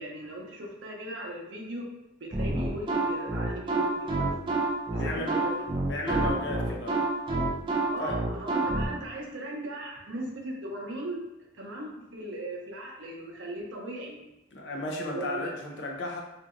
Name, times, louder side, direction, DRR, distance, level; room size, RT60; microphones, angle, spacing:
voice 1, 0.0-1.9 2.2-4.3 4.9-5.6 7.9-11.2 11.5-14.3 15.0-15.5, right 1 dB, 70° right, -1 dB, 0.6 m, -38 dB
sound 1, 2.3-8.9, right 2 dB, 25° right, 0.3 m, -28 dB
voice 2, 5.0-5.5 5.9-7.1 8.0-8.2 14.5-16.2, left 2 dB, 60° left, 1 dB, 0.5 m, -34 dB
2.7 x 2.6 x 2.5 m, 0.95 s
head